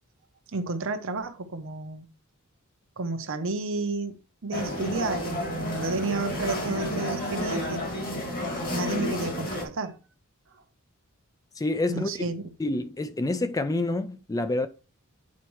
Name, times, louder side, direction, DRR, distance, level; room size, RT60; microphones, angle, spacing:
voice 1, 0.5-2.1 3.0-7.9 8.7-10.0 11.9-12.5, right 3 dB, 60° right, 0.8 m, -31 dB
sound 1, 4.5-9.6, left 1 dB, 45° left, 2.1 m, -31 dB
voice 2, 11.6-12.1 12.6-14.7, left 2 dB, 15° left, 0.3 m, -27 dB
8.4 x 4.3 x 3.1 m
head